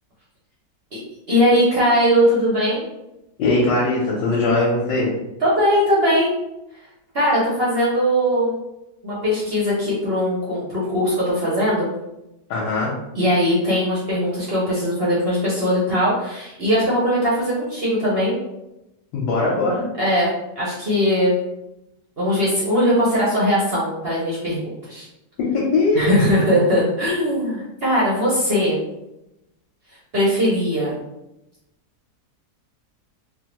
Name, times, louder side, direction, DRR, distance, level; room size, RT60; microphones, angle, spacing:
voice 1, 1.3-2.8 5.4-6.3 7.1-8.5 9.0-11.9 13.1-18.4 20.0-21.4 22.2-25.0 25.9-28.8 30.1-30.9, equal, 50° right, -6 dB, 0.7 m, -20 dB
voice 2, 3.4-5.1 12.5-12.9 19.1-19.8 25.4-26.1, left 3 dB, 90° left, -5 dB, 1.3 m, -20 dB
3.5 x 2.1 x 2.9 m, 0.92 s
omnidirectional pair, 1.8 m